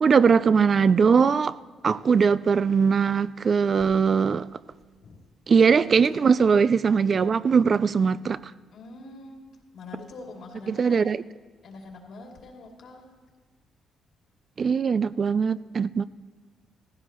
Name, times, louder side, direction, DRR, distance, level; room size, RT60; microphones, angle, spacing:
voice 1, 0.0-1.6 1.8-4.5 5.5-8.4 10.7-11.2 14.6-16.0, right 6 dB, 45° right, 16 dB, 0.3 m, -20 dB
voice 2, 1.8-2.2 5.0-5.3 8.7-9.4 9.7-11.1 11.6-13.1, left 3 dB, 70° left, -1 dB, 2.8 m, -44 dB
17.0 x 15.5 x 3.0 m, 1.4 s
cardioid pair, 90°, 0 cm